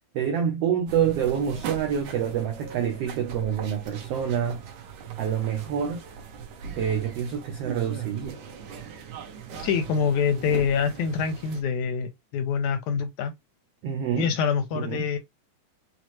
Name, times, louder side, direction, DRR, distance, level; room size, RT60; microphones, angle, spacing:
voice 1, 0.1-4.6 5.2-6.0 6.7-8.4 13.8-14.3 14.7-15.1, right 8 dB, 90° right, 1.3 m, -27 dB
sound 1, 0.9-11.6, right 7 dB, 75° right, 2.3 m, -39 dB
voice 2, 9.6-13.3 14.2-15.2, left 6 dB, 80° left, 1.8 m, -25 dB
6.1 x 2.1 x 3.1 m
omnidirectional pair, 3.7 m